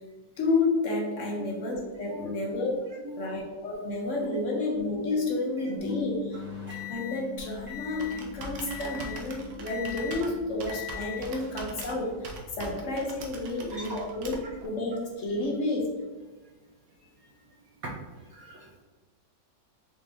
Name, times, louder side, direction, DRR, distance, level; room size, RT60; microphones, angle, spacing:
voice 1, 0.4-2.8 3.2-6.4 6.9-14.4 14.6-15.9, left 2 dB, 55° left, -1 dB, 1.0 m, -30 dB
voice 2, 3.0-3.4 13.7-14.1 17.8-17.9 18.2-18.8, right 1 dB, 65° right, -2 dB, 0.9 m, -40 dB
Bass guitar, 5.8-12.0, left 12 dB, 80° left, 1.2 m, -43 dB
sound 1, 6.3-8.3 8.7-9.3 9.7-10.3 10.7-11.3 12.1-12.4, left 10 dB, 10° right, 1.0 m, -41 dB
Computer keyboard, 7.4-14.7, right 2 dB, 85° right, 1.4 m, -43 dB
5.0 x 2.9 x 3.5 m, 1.3 s
omnidirectional pair, 1.9 m